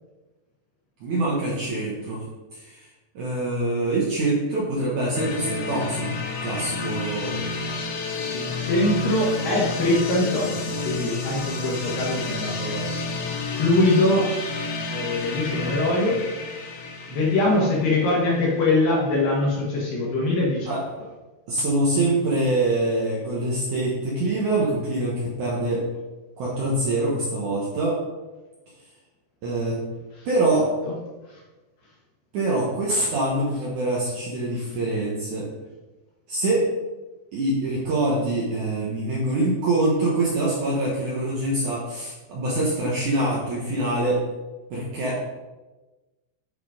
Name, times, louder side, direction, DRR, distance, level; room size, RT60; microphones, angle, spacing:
voice 1, 1.0-2.2 2.5-2.9 3.1-6.1 6.4-7.4 20.7-20.8 21.5-25.8 26.4-28.0 29.4-29.8 30.2-30.7 32.3-35.5 36.3-36.7 37.3-44.2 44.7-45.3, right 2 dB, 85° right, -5 dB, 1.7 m, -24 dB
sound 1, 5.2-18.9, left 3 dB, 75° left, 3.8 m, -30 dB
voice 2, 8.3-12.9 13.5-14.4 14.9-16.2 17.1-20.8 30.9-31.0 31.3-31.4 34.6-34.7, left 2 dB, 60° left, -4 dB, 2.6 m, -23 dB
10.5 x 4.4 x 4.9 m, 1.2 s
omnidirectional pair, 5.6 m